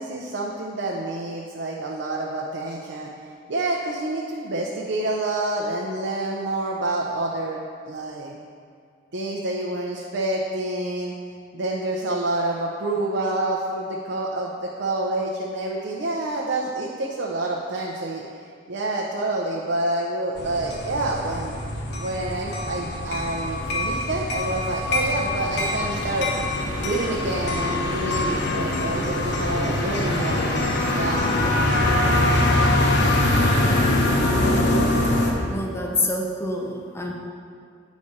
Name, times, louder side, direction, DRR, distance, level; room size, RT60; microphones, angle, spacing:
voice 1, 0.0-3.1 3.5-8.4 9.1-11.1 11.5-18.2 18.7-21.6 22.0-26.3 26.8-31.2, right 2 dB, 65° right, -2 dB, 0.6 m, -28 dB
sound 1, 20.4-35.3, left 1 dB, 65° left, 0.8 m, -23 dB
voice 2, 35.5-37.1, left 2 dB, 15° left, 0 dB, 0.6 m, -27 dB
8.4 x 4.1 x 5.0 m, 2.2 s
head